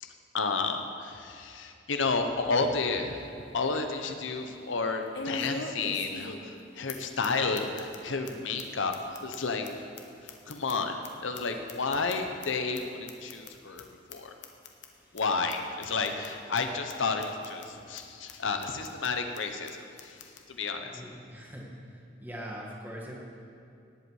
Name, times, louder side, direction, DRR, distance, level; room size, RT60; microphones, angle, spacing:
voice 1, 0.0-8.9 9.2-9.7 10.5-14.3 15.1-20.2 20.5-20.9, left 4 dB, 85° left, 6 dB, 0.9 m, -31 dB
sound 1, 2.8-2.9 3.3-3.4 5.1-6.6 6.9-7.0 7.2-7.3 7.6-8.0 8.3-8.4 8.6-8.7 8.9-11.1 11.3-12.5 12.7-12.8 13.1-13.5 13.8-13.9 14.1-14.2 14.4-14.9 15.2-15.3 15.5-15.6 15.8-16.3 16.6-16.7 16.9-17.0 17.2-17.7 18.0-18.1 18.3-18.4 18.6-19.1 19.4-19.5 19.7-19.8 20.0-20.4, left 3 dB, 65° left, 1.1 m, -40 dB
voice 2, 20.8-21.7 22.2-23.1, equal, 10° right, -3 dB, 1.9 m, -42 dB
18.0 x 8.2 x 4.8 m, 2.5 s
head